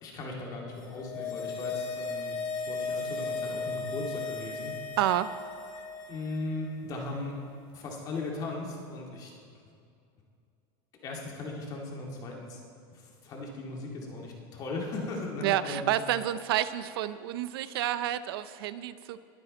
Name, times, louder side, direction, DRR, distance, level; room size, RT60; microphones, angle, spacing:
voice 1, 0.0-2.4 2.7-4.7 6.1-7.3 7.7-9.3 9.7-9.8 11.0-12.6 12.9-15.9, left 2 dB, 30° left, -1 dB, 2.0 m, -37 dB
sound 1, 0.8-6.3 6.6-6.7, left 4 dB, 65° left, 2.0 m, -36 dB
voice 2, 5.0-5.3 15.4-19.2, right 12 dB, 85° right, 15 dB, 0.5 m, -29 dB
21.0 x 8.7 x 4.0 m, 2.4 s
supercardioid pair, 160°, 12 cm